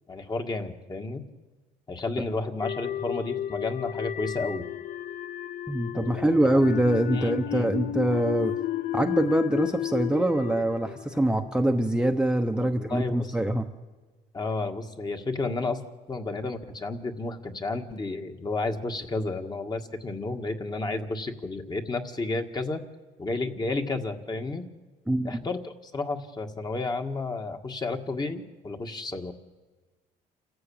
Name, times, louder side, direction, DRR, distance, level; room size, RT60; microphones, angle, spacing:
voice 1, 0.1-1.2 1.9-4.7 5.9-6.6 7.1-8.0 12.6-13.4 14.3-15.8 16.1-22.8 23.2-24.6 25.2-29.3, left 3 dB, 25° left, 5 dB, 1.9 m, -32 dB
sound 1, 2.6-11.8, left 12 dB, 60° left, 0.7 m, -32 dB
voice 2, 5.7-8.6 8.9-13.7 25.1-25.4, right 1 dB, 5° right, 3 dB, 1.1 m, -24 dB
28.5 x 14.5 x 8.8 m, 1.3 s
cardioid pair, 110°, 17 cm